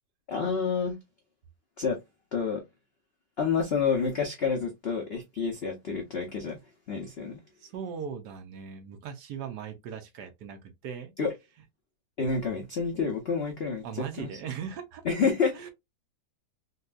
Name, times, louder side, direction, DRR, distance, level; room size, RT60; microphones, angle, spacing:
voice 1, 0.3-0.9 1.8-2.0 2.3-2.6 3.4-6.6 6.9-7.4 11.2-11.3 12.2-14.3 15.1-15.7, left 5 dB, 70° left, 0.5 m, -29 dB
voice 2, 7.6-11.2 12.5-12.6 13.8-15.1 15.5-15.7, right 7 dB, 70° right, 1.2 m, -39 dB
3.9 x 2.2 x 2.4 m
omnidirectional pair, 2.0 m